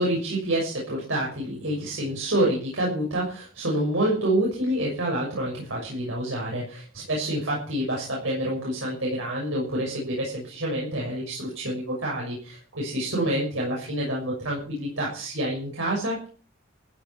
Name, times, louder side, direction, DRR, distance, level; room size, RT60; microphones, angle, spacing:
voice 1, 0.0-16.3, right 1 dB, 70° right, -2 dB, 6.6 m, -27 dB
15.5 x 9.3 x 7.2 m, 0.42 s
head